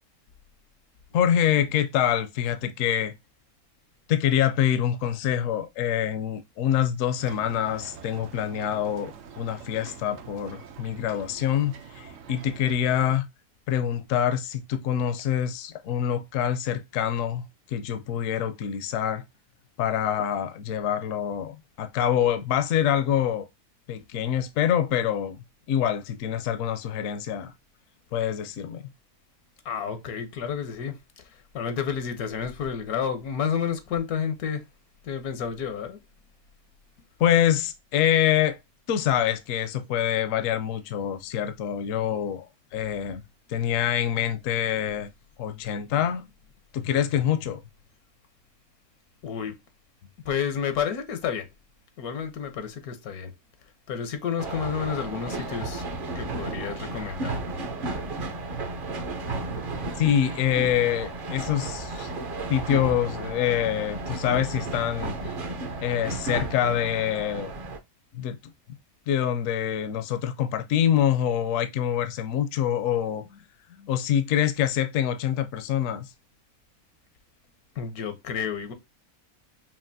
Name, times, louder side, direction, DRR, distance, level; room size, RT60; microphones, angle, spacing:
voice 1, 1.1-3.1 4.1-13.2 13.7-19.2 19.8-23.5 23.9-25.4 25.7-27.5 28.1-28.8 37.2-38.6 38.9-42.4 42.7-43.2 43.5-45.1 45.4-46.2 46.7-47.6 60.0-62.1 62.5-65.1 65.8-67.5 68.1-68.4 69.1-73.2 73.9-76.1, left 10 dB, 70° left, 0.9 m, -25 dB
sound 1, 7.2-13.2, right 6 dB, 65° right, 1.0 m, -45 dB
voice 2, 29.6-34.6 35.0-36.0 49.2-49.6 50.2-51.5 52.0-53.3 53.9-55.9 56.1-57.4 73.3-73.4 73.7-73.9 77.7-78.7, left 7 dB, 85° left, 1.4 m, -30 dB
sound 2, 54.4-67.8, right 2 dB, 45° right, 0.7 m, -33 dB
5.8 x 2.5 x 2.6 m
omnidirectional pair, 1.5 m